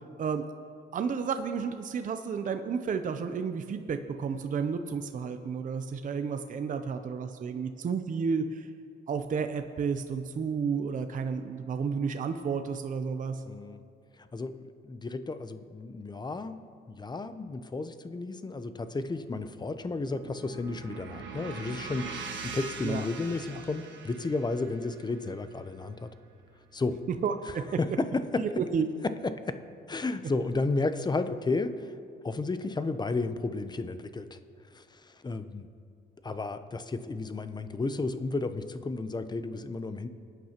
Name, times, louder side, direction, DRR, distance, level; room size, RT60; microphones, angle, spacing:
voice 1, 0.9-8.7 9.1-13.4 22.8-23.0 23.5-23.6 27.2-27.6 28.4-28.8, right 6 dB, 40° right, 8 dB, 0.6 m, -31 dB
voice 2, 13.5-13.8 14.2-16.6 16.9-26.1 26.7-27.0 27.8-28.4 29.0-29.6 29.9-31.9 32.2-34.4 34.7-35.7 36.2-40.1, left 3 dB, 20° left, 10 dB, 0.6 m, -33 dB
sound 1, 19.7-27.7, right 4 dB, 65° right, 1.4 m, -43 dB
20.5 x 9.3 x 2.9 m, 2.3 s
cardioid pair, 90°, 20 cm